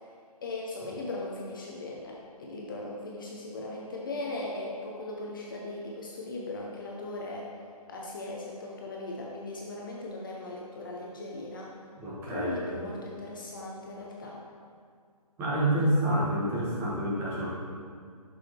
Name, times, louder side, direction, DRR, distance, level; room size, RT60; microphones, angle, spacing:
voice 1, 0.4-7.5 7.9-11.7 12.3-14.4, left 2 dB, 35° left, -3 dB, 0.6 m, -38 dB
voice 2, 12.0-12.8 15.4-17.5, right 1 dB, 10° right, -8 dB, 1.0 m, -28 dB
6.2 x 6.0 x 3.0 m, 2.1 s
figure-of-eight pair, 140°, 20 cm